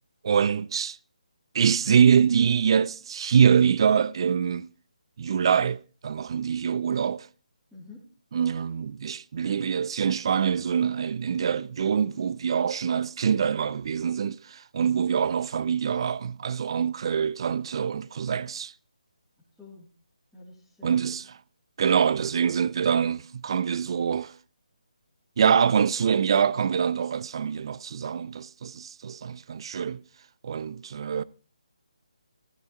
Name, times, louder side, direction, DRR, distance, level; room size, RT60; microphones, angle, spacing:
voice 1, 0.2-1.0 1.5-4.7 5.2-7.3 8.3-18.7 20.8-21.4 21.8-24.3 25.4-30.0 30.4-31.2, right 7 dB, 45° right, 0.5 m, -24 dB
voice 2, 7.7-8.0 19.6-19.9 20.3-21.1, left 3 dB, ahead, 2.9 m, -48 dB
14.5 x 13.0 x 3.0 m
figure-of-eight pair, 155°, 4 cm